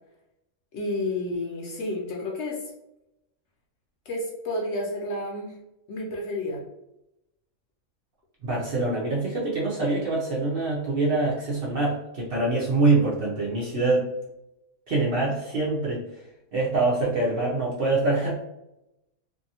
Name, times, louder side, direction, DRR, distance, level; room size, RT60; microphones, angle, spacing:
voice 1, 0.7-2.6 4.1-5.6 5.9-6.7, left 1 dB, 65° left, -1 dB, 0.8 m, -30 dB
voice 2, 8.4-14.1 14.9-16.0 16.5-18.4, right 3 dB, 55° right, -6 dB, 0.7 m, -24 dB
2.6 x 2.5 x 2.7 m, 0.90 s
omnidirectional pair, 1.5 m